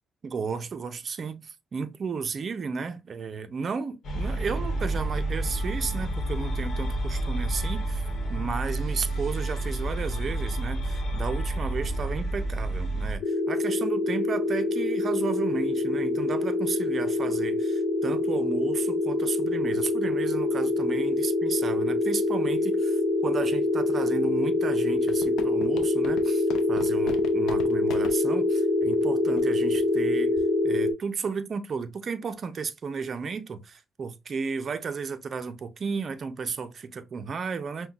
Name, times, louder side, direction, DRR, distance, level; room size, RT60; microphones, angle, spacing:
voice 1, 0.2-30.4 30.6-37.9, right 5 dB, 50° right, 0.5 m, -33 dB
sound 1, 4.0-13.2, right 1 dB, 65° left, 1.0 m, -29 dB
sound 2, 13.2-30.9, left 2 dB, 40° left, 1.0 m, -25 dB
sound 3, 25.0-28.2 28.9-29.0 29.4-29.5 29.7-30.0 30.4-30.6, left 6 dB, 85° left, 0.5 m, -39 dB
5.6 x 2.2 x 2.3 m
cardioid pair, 90°, 0 cm